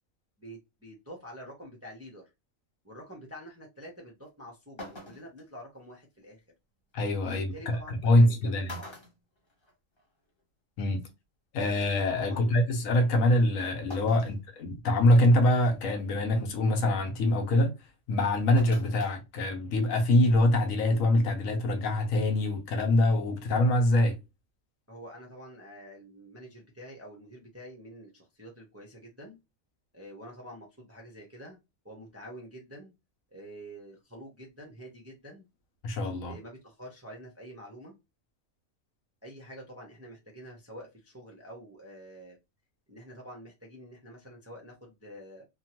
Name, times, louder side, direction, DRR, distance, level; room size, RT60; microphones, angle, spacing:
voice 1, 0.4-2.2 2.8-6.4 7.3-8.9 12.2-12.6 14.1-14.3 24.9-29.4 29.9-31.6 31.8-32.9 33.3-35.5 36.3-38.0 39.2-42.4 42.9-45.4, equal, 20° right, 0.4 m, -47 dB
sound 1, 4.3-4.4 4.8-5.4 7.0-7.1 8.1-8.3 8.7-10.1 10.4-10.5 11.7-11.8 13.9-14.4 15.0-15.1 15.6-15.9 18.6-19.2 19.5-19.6, left 1 dB, 25° left, 0.9 m, -45 dB
voice 2, 6.9-8.8 10.8-11.0 11.5-17.7 18.1-24.2 35.8-36.4, left 1 dB, 85° left, 1.1 m, -24 dB
2.9 x 2.2 x 2.8 m
omnidirectional pair, 1.4 m